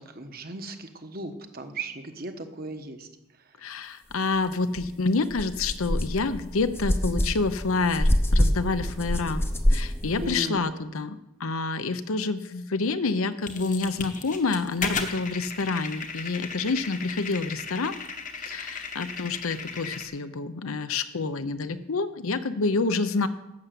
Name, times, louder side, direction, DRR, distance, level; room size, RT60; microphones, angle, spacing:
voice 1, 0.0-3.1 10.2-10.6, right 2 dB, 45° right, 7 dB, 1.1 m, -36 dB
voice 2, 3.6-9.4 9.7-17.9 18.3-23.3, left 3 dB, 75° left, 12 dB, 0.7 m, -28 dB
sound 1, 4.8-4.9 5.3-10.4, equal, 10° left, 0.6 m, -25 dB
sound 2, 13.4-20.1, left 5 dB, 35° left, 1.0 m, -36 dB
12.0 x 6.8 x 7.6 m, 0.94 s
head